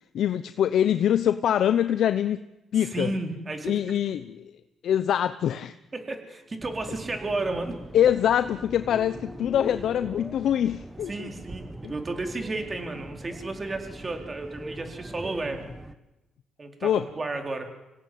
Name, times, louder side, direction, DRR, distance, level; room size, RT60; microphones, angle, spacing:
voice 1, 0.1-2.4 2.7-3.1 3.6-4.5 4.8-5.8 7.9-11.3 11.8-11.9 16.8-17.0, left 10 dB, 70° left, 11 dB, 0.9 m, -24 dB
voice 2, 2.8-4.0 5.9-7.8 11.1-15.7 16.6-16.9 17.2-17.7, right 2 dB, 30° right, 4 dB, 4.3 m, -32 dB
sound 1, 6.0-7.0 7.3-8.2 8.5-10.1, left 2 dB, 35° left, 4.9 m, -46 dB
sound 2, 6.6-15.9, right 1 dB, 10° right, 1.6 m, -42 dB
26.5 x 17.0 x 9.5 m, 1.0 s
cardioid pair, 90°, 0 cm